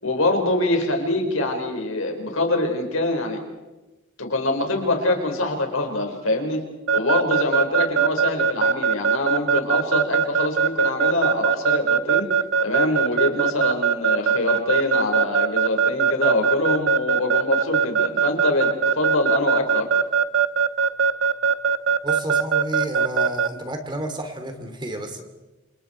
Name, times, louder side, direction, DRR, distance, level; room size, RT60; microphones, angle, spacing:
voice 1, 0.0-3.4 4.2-6.6 6.9-12.3 12.6-19.9, left 2 dB, 80° left, 3 dB, 4.8 m, -24 dB
Keyboard (musical) / Alarm, 6.9-23.5, right 6 dB, 85° right, 1.3 m, -19 dB
voice 2, 22.0-25.2, right 1 dB, 20° right, 6 dB, 2.7 m, -31 dB
28.5 x 28.0 x 4.5 m, 1.1 s
head